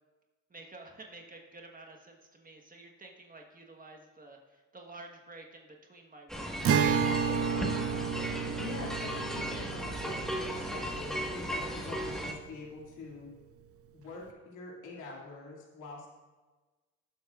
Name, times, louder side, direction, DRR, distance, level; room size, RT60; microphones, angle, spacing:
voice 1, 0.5-7.7, right 2 dB, 30° right, 2 dB, 1.4 m, -51 dB
sound 1, 6.3-12.3, equal, ahead, 1.6 m, -36 dB
Acoustic guitar, 6.6-12.1, right 6 dB, 50° right, 0.7 m, -32 dB
voice 2, 8.6-13.3 13.9-16.1, left 4 dB, 85° left, -2 dB, 2.5 m, -45 dB
19.0 x 7.9 x 2.5 m, 1.3 s
cardioid pair, 90°, 30 cm